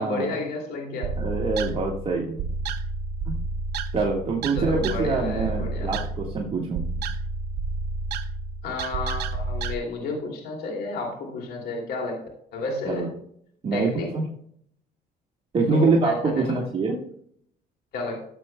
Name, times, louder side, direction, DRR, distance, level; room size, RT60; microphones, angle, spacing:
voice 1, 0.0-1.1 4.5-6.0 8.6-12.2 12.5-13.1 13.7-14.1 15.6-16.6 17.9-18.3, left 3 dB, 70° left, 0 dB, 2.7 m, -31 dB
sound 1, 1.0-9.7, right 3 dB, 75° right, 0.7 m, -30 dB
voice 2, 1.2-2.5 3.3-3.4 3.9-6.8 12.9-13.1 13.6-14.2 15.5-17.0, right 3 dB, 35° right, -2 dB, 1.7 m, -25 dB
14.0 x 7.7 x 2.3 m, 0.65 s
cardioid pair, 110°, 17 cm